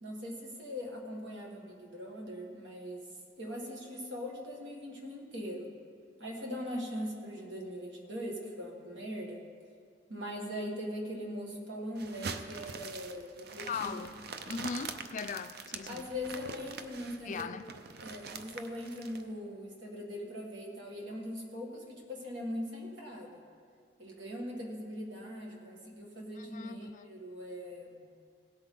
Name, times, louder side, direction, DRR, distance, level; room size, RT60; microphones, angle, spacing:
voice 1, 0.0-3.1 3.4-5.7 6.2-9.4 10.1-14.0 15.9-17.5 18.0-23.4 24.0-28.1, equal, 80° right, 0 dB, 1.9 m, -41 dB
sound 1, 12.0-19.2, right 5 dB, 60° right, 0.6 m, -44 dB
voice 2, 13.7-14.2 14.5-16.1 17.2-17.7 26.4-27.1, left 5 dB, 45° left, 11 dB, 0.4 m, -39 dB
17.0 x 8.1 x 3.8 m, 2.2 s
head